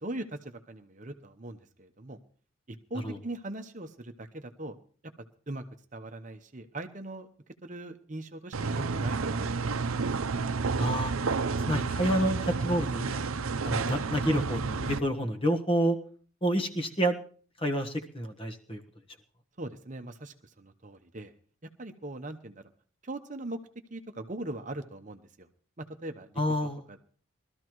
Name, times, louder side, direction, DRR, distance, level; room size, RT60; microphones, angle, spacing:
voice 1, 0.0-2.2 2.7-4.8 5.0-5.1 5.5-5.6 5.9-7.3 7.6-9.7 13.9-14.0 19.6-21.3 21.6-22.7 23.0-23.6 23.9-25.5 25.8-27.0, right 2 dB, 35° right, 7 dB, 0.9 m, -40 dB
sound 1, 8.5-15.0, right 4 dB, 85° right, 0.7 m, -30 dB
voice 2, 10.8-11.1 11.7-13.2 13.6-16.0 16.4-17.2 17.6-18.8 26.4-26.8, equal, 25° left, 4 dB, 1.3 m, -28 dB
22.0 x 13.5 x 3.1 m, 0.43 s
head